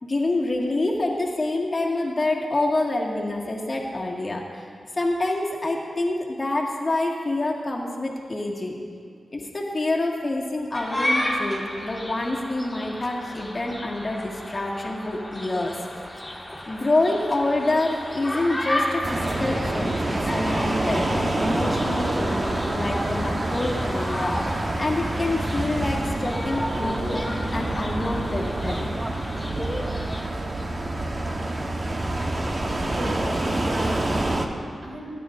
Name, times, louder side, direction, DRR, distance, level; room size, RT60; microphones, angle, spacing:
voice 1, 0.0-4.7 4.9-8.8 9.3-15.8 16.7-27.2 27.5-28.9, left 2 dB, 45° left, -2 dB, 1.9 m, -27 dB
sound 1, 10.7-30.2, left 1 dB, 15° left, 1.9 m, -33 dB
sound 2, 19.0-34.5, right 1 dB, 40° right, 1.1 m, -27 dB
voice 2, 32.9-35.1, right 1 dB, 75° right, -4 dB, 3.4 m, -34 dB
21.0 x 9.3 x 2.6 m, 2.1 s
cardioid pair, 50°, 0 cm